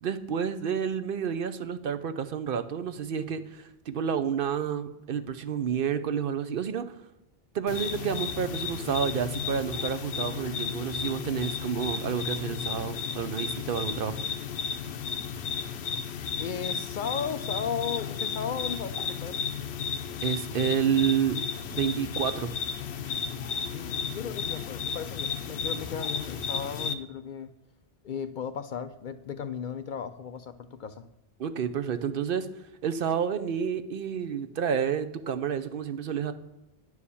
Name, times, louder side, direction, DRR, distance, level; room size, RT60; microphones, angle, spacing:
voice 1, 0.0-7.0 7.5-14.2 20.2-21.4 21.7-22.5 31.4-32.5 32.8-36.3, right 7 dB, 65° right, 11 dB, 0.8 m, -29 dB
sound 1, 7.7-26.9, left 6 dB, 85° left, 0.9 m, -33 dB
voice 2, 16.4-19.4 23.7-27.5 28.0-31.1, left 7 dB, 60° left, 11 dB, 0.6 m, -35 dB
10.0 x 4.8 x 6.9 m, 0.95 s
omnidirectional pair, 1.1 m